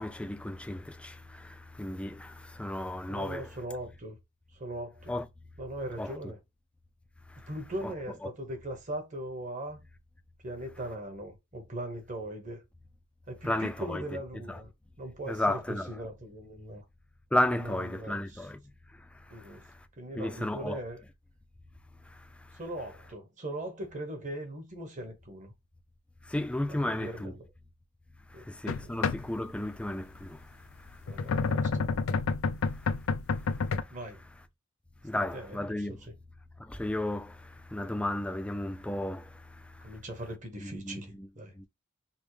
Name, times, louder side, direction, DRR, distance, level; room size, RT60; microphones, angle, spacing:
voice 1, 0.0-3.5 5.1-5.3 6.0-6.1 7.3-7.5 7.8-7.9 13.4-14.0 14.5-14.6 15.3-15.9 17.3-19.9 20.2-20.8 22.1-22.6 26.2-27.3 28.3-31.3 32.7-32.9 33.3-34.0 35.0-36.0 36.6-40.0 40.6-41.3 41.6-41.7, left 1 dB, 5° left, 0.4 m, -34 dB
voice 2, 3.1-4.2 4.5-5.1 5.6-6.4 7.5-9.8 10.4-12.6 13.3-14.7 15.0-16.8 17.5-18.4 19.3-19.6 20.0-21.0 22.5-25.5 26.8-27.4 28.3-28.4 28.8-28.9 31.0-31.8 33.9-34.2 35.2-36.1 39.8-41.5, right 1 dB, 40° right, 1.2 m, -40 dB
sound 1, 28.7-29.7 30.9-33.8, left 4 dB, 80° left, 0.4 m, -29 dB
5.3 x 2.1 x 3.2 m
head